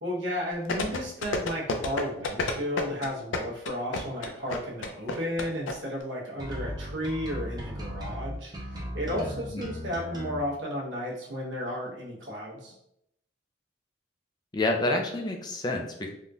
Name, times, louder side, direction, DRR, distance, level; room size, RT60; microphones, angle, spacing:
voice 1, 0.0-12.7, equal, 75° right, -3 dB, 1.0 m, -33 dB
sound 1, 0.7-5.7 6.0-6.1, left 3 dB, 85° left, 0.4 m, -29 dB
sound 2, 6.4-10.4, equal, 20° right, 0.6 m, -36 dB
voice 2, 14.5-16.1, left 2 dB, 20° left, 2 dB, 0.4 m, -28 dB
3.5 x 2.4 x 2.7 m, 0.78 s
head